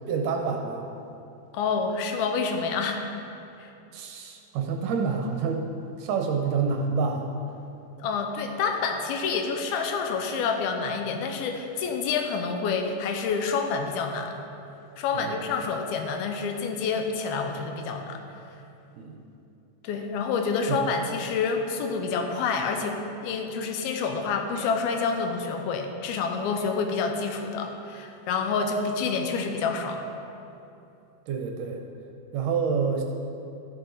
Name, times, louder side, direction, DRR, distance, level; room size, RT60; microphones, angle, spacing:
voice 1, 0.1-0.9 3.9-5.7 6.0-7.3 15.1-15.4 19.0-19.2 20.7-20.9 31.3-31.8 32.3-33.0, right 5 dB, 75° right, 2 dB, 2.0 m, -28 dB
voice 2, 1.5-3.0 3.6-3.7 8.0-14.4 15.0-18.2 19.8-30.1, left 5 dB, 85° left, 4 dB, 2.7 m, -28 dB
13.5 x 7.8 x 3.9 m, 2.8 s
omnidirectional pair, 4.4 m